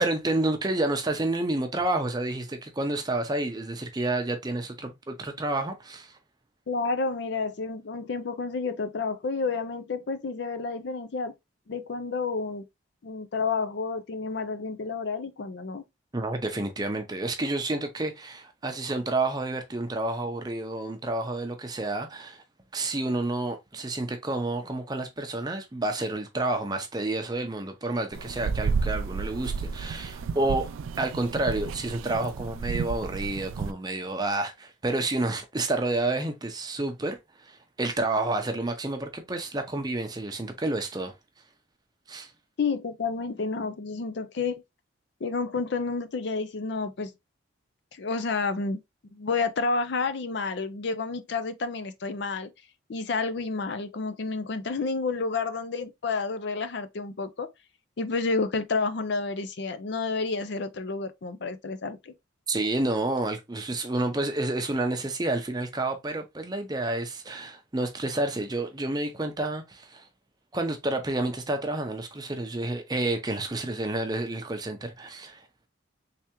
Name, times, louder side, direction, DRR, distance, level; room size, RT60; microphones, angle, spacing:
voice 1, 0.0-6.2 16.1-22.4 22.7-41.1 42.1-42.3 62.5-70.1 70.5-75.7, right 2 dB, 20° right, 0.6 m, -29 dB
voice 2, 6.7-11.3 11.7-12.6 13.0-15.8 42.6-44.6 45.2-47.1 47.9-48.8 49.1-52.5 52.9-57.5 58.0-62.1, left 4 dB, 60° left, 0.5 m, -30 dB
sound 1, 28.1-33.7, right 5 dB, 85° right, 0.3 m, -32 dB
3.4 x 3.4 x 2.9 m
head